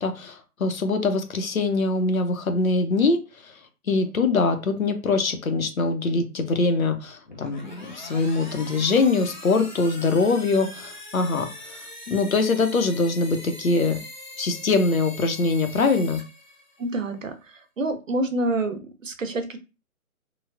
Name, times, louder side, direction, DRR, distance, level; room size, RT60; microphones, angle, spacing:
voice 1, 0.0-3.5 3.9-11.8 12.1-14.0 14.4-16.2, left 3 dB, 65° left, 7 dB, 0.8 m, -23 dB
sound 1, 7.2-17.0, left 1 dB, 30° left, 0.6 m, -42 dB
voice 2, 16.8-19.6, right 2 dB, 60° right, 7 dB, 0.7 m, -28 dB
3.2 x 2.3 x 2.4 m, 0.30 s
figure-of-eight pair, 155°, 45 cm